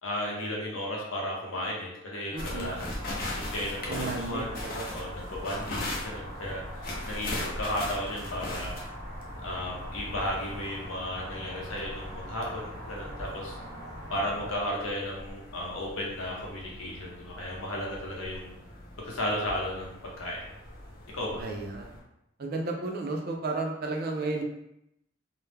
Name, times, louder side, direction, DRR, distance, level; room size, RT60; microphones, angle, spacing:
voice 1, 0.0-3.0 3.4-4.6 4.9-8.7 9.4-13.6 14.1-18.5 19.0-20.4 21.1-21.4, left 1 dB, 85° left, -3 dB, 0.7 m, -34 dB
sound 1, 2.3-14.5, equal, 15° left, 0.8 m, -43 dB
voice 2, 2.3-2.7 3.9-4.9 21.4-22.0 22.4-24.4, right 3 dB, 50° right, 1 dB, 0.4 m, -33 dB
sound 2, 2.4-22.0, left 1 dB, 45° left, 0.5 m, -40 dB
2.2 x 2.0 x 3.2 m, 0.82 s
head